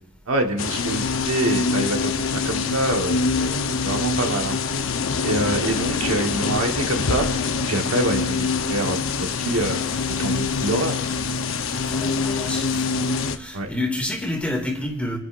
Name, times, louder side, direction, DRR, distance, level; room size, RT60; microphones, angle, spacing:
voice 1, 0.3-4.6 5.2-7.3 7.7-9.8 10.2-11.0 13.5-13.7, right 2 dB, 80° right, 3 dB, 1.3 m, -26 dB
sound 1, 0.6-13.4, left 4 dB, 70° left, 0.8 m, -24 dB
voice 2, 11.8-15.2, left 1 dB, 5° left, 2 dB, 2.2 m, -29 dB
28.5 x 11.0 x 2.5 m, 0.91 s
head